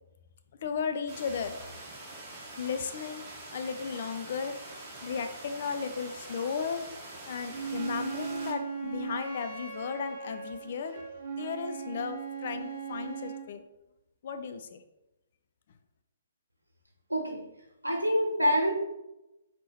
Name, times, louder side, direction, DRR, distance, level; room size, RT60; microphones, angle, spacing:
voice 1, 0.6-1.6 2.6-3.2 3.5-4.5 5.0-6.8 7.3-11.0 11.3-13.6 14.2-14.8, left 6 dB, 45° left, 8 dB, 0.4 m, -35 dB
sound 1, 1.1-8.5, right 2 dB, 20° right, 1.5 m, -45 dB
Wind instrument woodwind instrument, 7.5-13.5, right 6 dB, 40° right, 1.0 m, -38 dB
voice 2, 17.1-17.4 17.8-18.7, equal, 85° right, 0 dB, 0.8 m, -26 dB
4.1 x 3.6 x 3.0 m, 0.93 s
figure-of-eight pair, 130°, 0 cm